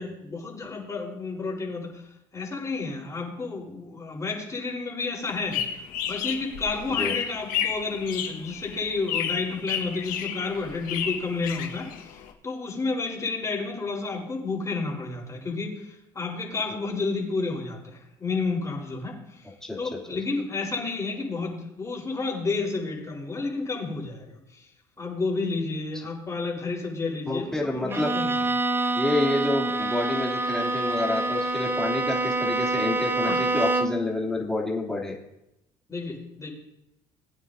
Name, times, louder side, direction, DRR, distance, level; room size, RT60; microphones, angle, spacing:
voice 1, 0.0-2.0 2.3-5.6 6.1-12.1 12.4-19.2 19.8-24.4 25.0-28.3 33.2-33.4 35.9-36.5, left 3 dB, 20° left, -1 dB, 4.3 m, -31 dB
sound 1, 5.3-12.3, left 9 dB, 75° left, 1.6 m, -32 dB
voice 2, 19.6-20.0 27.3-28.1 28.9-35.2, left 2 dB, 5° left, -2 dB, 3.0 m, -28 dB
Bowed string instrument, 27.9-34.1, right 2 dB, 15° right, 0.8 m, -26 dB
20.5 x 9.0 x 2.8 m, 0.84 s
supercardioid pair, 100°, 14 cm